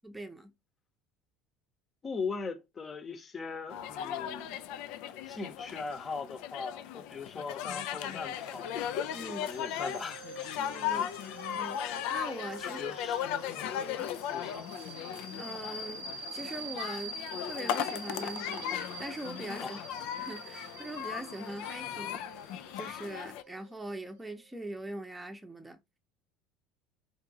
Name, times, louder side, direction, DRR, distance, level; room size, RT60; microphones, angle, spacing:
voice 1, 0.0-0.5 9.1-9.5 10.6-11.1 11.5-11.8 12.1-12.8 14.0-14.1 15.3-17.2 17.5-19.8 20.2-22.2 22.8-25.8, right 1 dB, 10° right, 0.8 m, -42 dB
voice 2, 2.0-4.6 5.3-8.7 9.4-10.6 10.9-11.4 12.6-13.2 13.5-13.8 14.3-14.7 19.6-19.8, left 4 dB, 30° left, 0.9 m, -40 dB
sound 1, 3.7-23.4, left 10 dB, 60° left, 0.3 m, -37 dB
sound 2, 8.3-24.6, right 3 dB, 80° right, 0.7 m, -46 dB
4.4 x 2.6 x 2.8 m
hypercardioid pair, 70°, 0 cm